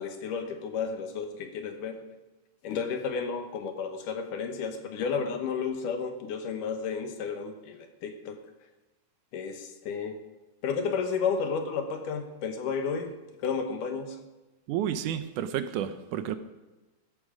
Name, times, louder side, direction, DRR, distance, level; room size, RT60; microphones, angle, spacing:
voice 1, 0.0-2.0 2.6-8.4 9.3-10.2 10.6-13.1 13.4-14.2, left 5 dB, 80° left, 6 dB, 2.9 m, -32 dB
voice 2, 14.7-16.4, right 10 dB, 80° right, 11 dB, 2.3 m, -31 dB
15.0 x 11.5 x 5.1 m, 1.1 s
omnidirectional pair, 3.6 m